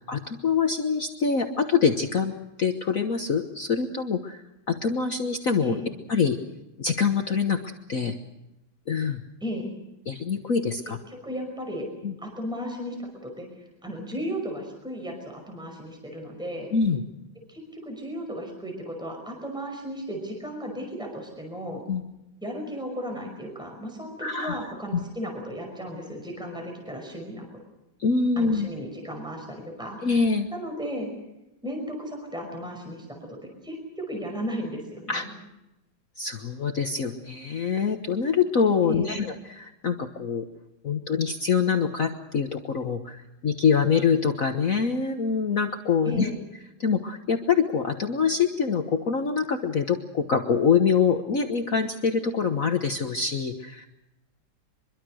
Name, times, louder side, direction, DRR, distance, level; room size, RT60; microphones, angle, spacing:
voice 1, 0.0-2.3 2.6-5.8 6.1-6.4 6.8-8.1 8.9-9.2 10.1-11.0 12.0-12.1 16.7-17.0 21.9-22.0 24.2-24.6 28.0-28.7 30.0-30.5 35.1-35.2 36.2-40.4 40.8-46.3 46.8-53.9, left 6 dB, 45° left, 5 dB, 1.6 m, -25 dB
voice 2, 11.1-11.9 12.2-13.5 13.8-16.7 17.5-21.8 22.4-27.5 28.4-31.1 31.6-35.3 38.9-39.3 46.1-46.4, equal, ahead, 2 dB, 5.3 m, -35 dB
24.5 x 23.5 x 6.4 m, 0.93 s
omnidirectional pair, 2.1 m